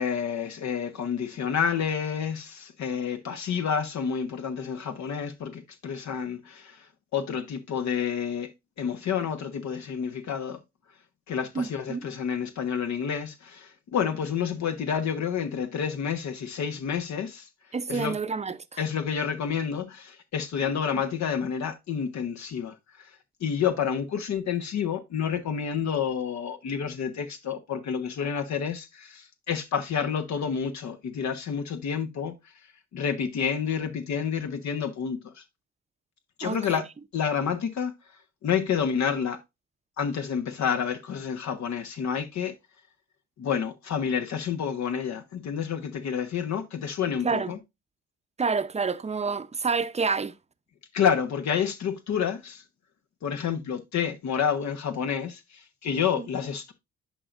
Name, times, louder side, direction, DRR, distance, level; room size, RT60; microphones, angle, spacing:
voice 1, 0.0-6.9 7.1-8.5 8.8-10.6 11.3-17.5 17.9-18.1 18.8-23.1 23.4-32.3 32.9-35.4 36.4-36.9 37.1-37.9 38.4-39.4 40.0-42.5 43.4-47.6 50.9-52.6 53.2-56.7, left 7 dB, 65° left, 1.2 m, -29 dB
voice 2, 11.5-12.1 17.7-18.8 20.9-21.0 36.4-36.8 47.2-47.6 48.4-50.3 56.2-56.3, right 5 dB, 20° right, 0.7 m, -29 dB
11.0 x 4.7 x 2.5 m
cardioid pair, 90°, 30 cm